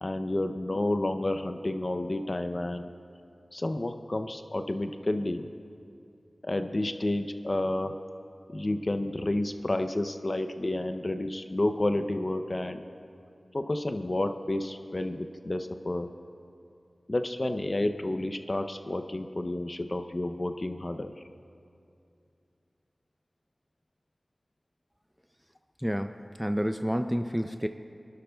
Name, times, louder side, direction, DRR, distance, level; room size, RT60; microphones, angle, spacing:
voice 1, 0.0-2.9 3.5-5.5 6.4-7.9 8.5-12.8 13.5-16.1 17.1-21.1, left 1 dB, 45° left, 8 dB, 0.6 m, -30 dB
voice 2, 25.8-27.7, equal, 5° right, 8 dB, 0.4 m, -29 dB
23.0 x 11.5 x 2.3 m, 2.5 s
wide cardioid pair, 45°, 0 cm